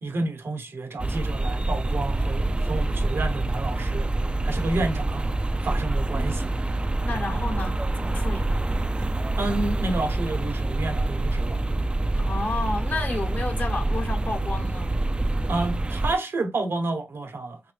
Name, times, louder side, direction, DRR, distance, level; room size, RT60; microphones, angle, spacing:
voice 1, 0.0-4.1 4.4-5.3 5.6-6.5 7.1-7.5 9.4-11.6 15.5-17.6, right 2 dB, 75° right, 0.9 m, -30 dB
sound 1, 1.0-16.2, right 2 dB, 25° right, 0.3 m, -26 dB
voice 2, 7.0-8.7 12.2-14.9, left 3 dB, 50° left, 0.9 m, -31 dB
3.3 x 2.6 x 3.2 m
wide cardioid pair, 80°, 4 cm